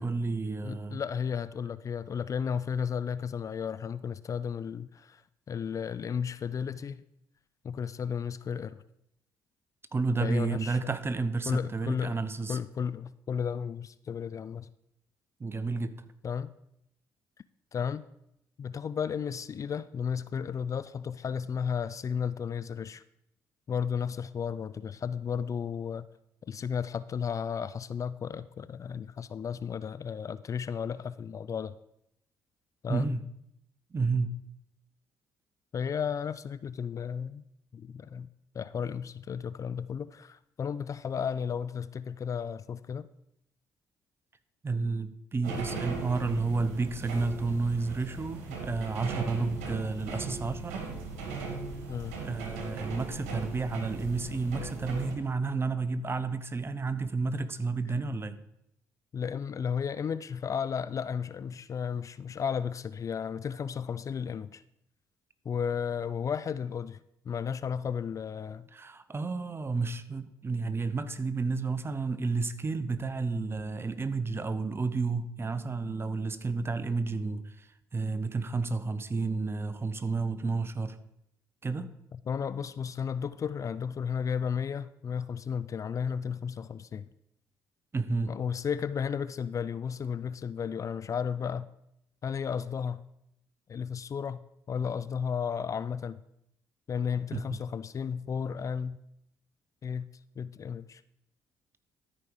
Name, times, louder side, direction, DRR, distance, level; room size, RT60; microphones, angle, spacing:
voice 1, 0.0-1.0 9.9-12.6 15.4-15.9 32.9-33.2 33.9-34.3 44.6-50.9 52.2-58.4 68.7-81.0 81.6-81.9 87.9-88.3 97.3-97.6, right 3 dB, 30° right, 13 dB, 0.8 m, -31 dB
voice 2, 0.6-5.2 5.5-7.0 7.6-8.8 10.2-10.8 11.5-12.2 12.5-14.7 16.2-16.5 17.7-18.0 18.6-23.0 23.7-26.1 26.5-31.8 32.8-33.1 35.7-37.4 37.7-38.3 38.5-43.1 51.9-52.2 59.1-64.6 65.5-68.7 82.1-87.1 88.3-91.7 92.2-93.0 93.7-94.4 94.7-96.2 96.9-99.0 99.8-100.1 100.4-101.0, left 7 dB, 40° left, 16 dB, 0.4 m, -33 dB
sound 1, 45.4-55.1, right 4 dB, 85° right, 1.4 m, -38 dB
13.0 x 5.0 x 4.8 m, 0.80 s
hypercardioid pair, 55°, 8 cm